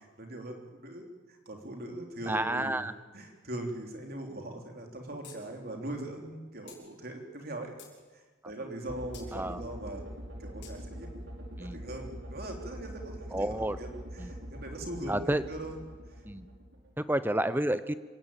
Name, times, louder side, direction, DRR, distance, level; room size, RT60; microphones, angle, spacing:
voice 1, 0.2-7.7 8.1-10.1 10.4-11.1 11.6-15.8, right 1 dB, 45° right, 2 dB, 3.5 m, -41 dB
voice 2, 2.3-2.9 9.3-9.6 11.6-11.8 13.3-13.8 14.2-14.3 15.1-15.4 16.3-16.5 17.0-17.9, right 1 dB, 10° right, 13 dB, 0.7 m, -30 dB
sound 1, 5.2-5.4 5.7-5.8 6.7-6.8 7.4-8.0 9.1-9.3 10.6-10.7, left 9 dB, 55° left, 6.1 m, -50 dB
sound 2, 8.8-17.0, equal, 70° right, 5.1 m, -44 dB
26.5 x 17.0 x 8.9 m, 1.4 s
head